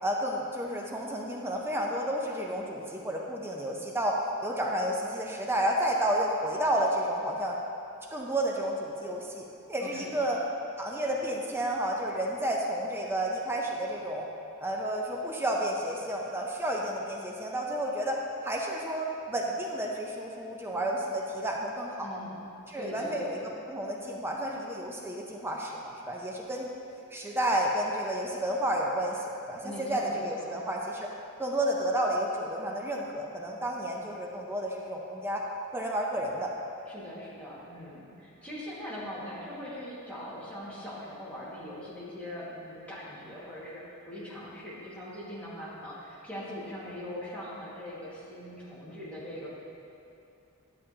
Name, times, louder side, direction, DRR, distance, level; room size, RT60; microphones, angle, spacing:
voice 1, 0.0-7.6 8.1-10.4 10.8-14.3 14.6-22.2 22.7-26.7 27.1-31.1 31.4-35.4 35.7-36.5, right 1 dB, 10° right, -1 dB, 0.6 m, -31 dB
voice 2, 9.8-10.3 22.0-22.4 22.8-23.5 29.6-30.6 36.9-49.5, left 1 dB, 5° left, -9 dB, 1.8 m, -41 dB
11.0 x 6.9 x 2.8 m, 2.7 s
head